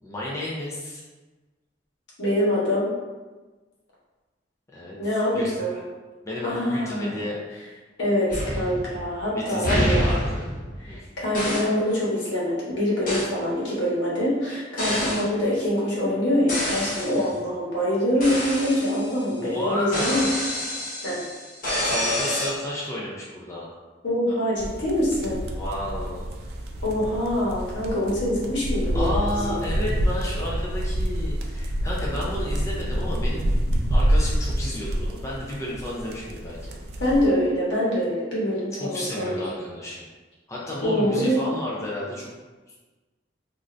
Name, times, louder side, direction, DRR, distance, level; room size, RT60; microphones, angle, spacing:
voice 1, 0.0-1.0 4.7-5.0 5.3-5.5 6.2-7.4 9.3-10.5 10.9-11.0 15.0-15.2 17.1-17.4 19.3-20.3 21.8-23.7 25.6-26.3 28.9-33.5 33.9-36.8 38.8-40.0 40.5-42.3, left 1 dB, 15° left, -6 dB, 0.4 m, -32 dB
voice 2, 2.2-2.9 5.0-5.8 6.4-7.2 8.0-10.1 10.8-20.3 21.0-21.2 24.0-25.4 26.8-29.6 37.0-39.6 40.8-41.4, left 1 dB, 80° left, -7 dB, 1.1 m, -24 dB
sound 1, 8.3-9.2 9.6-11.0 11.3-11.8 13.1-13.4 14.8-15.3 16.5-17.3 18.2-19.3 19.9-22.5, equal, 50° left, 0.9 m, -27 dB
sound 2, 24.6-37.3, equal, 60° right, 0.4 m, -27 dB
2.5 x 2.5 x 3.1 m, 1.3 s
head